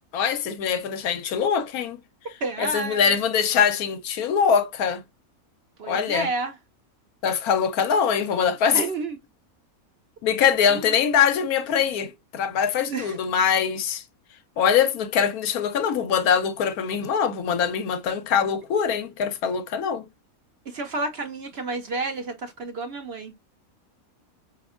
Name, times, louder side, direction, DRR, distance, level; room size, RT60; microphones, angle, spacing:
voice 1, 0.1-2.0 2.6-5.0 5.9-6.3 7.2-8.8 10.2-14.0 14.6-20.1, left 7 dB, 85° left, 1.2 m, -23 dB
voice 2, 2.4-3.1 5.8-6.5 8.7-9.2 10.7-10.9 12.8-13.2 20.7-23.3, right 3 dB, 60° right, 0.7 m, -30 dB
5.1 x 2.8 x 2.3 m
omnidirectional pair, 1.5 m